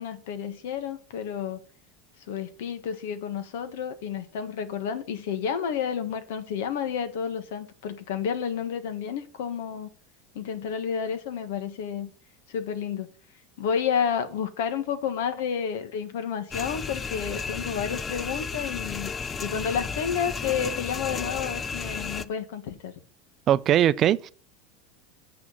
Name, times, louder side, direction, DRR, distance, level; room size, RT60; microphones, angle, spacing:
voice 1, 0.0-1.6 2.3-9.9 10.3-12.1 12.5-13.1 13.6-19.1 19.4-22.9, left 7 dB, 80° left, 1.5 m, -30 dB
sound 1, 16.5-22.2, left 5 dB, 20° left, 0.5 m, -33 dB
voice 2, 23.5-24.3, right 11 dB, 35° right, 0.5 m, -20 dB
7.7 x 6.2 x 7.9 m
supercardioid pair, 145°, 0 cm